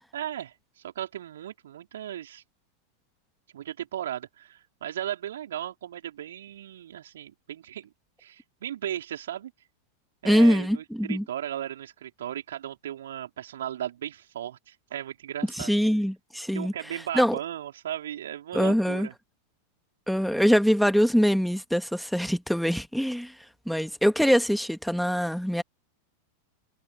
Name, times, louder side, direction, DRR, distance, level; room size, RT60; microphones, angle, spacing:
voice 1, 0.1-2.4 3.5-7.9 8.2-9.5 10.2-15.8 16.5-19.1, right 11 dB, 60° right, 5.2 m, -36 dB
voice 2, 10.2-11.2 15.6-16.7 17.1-17.3 18.5-19.1 20.1-23.3 23.7-25.6, equal, ahead, 2.4 m, -23 dB
figure-of-eight pair, 90°, 0 cm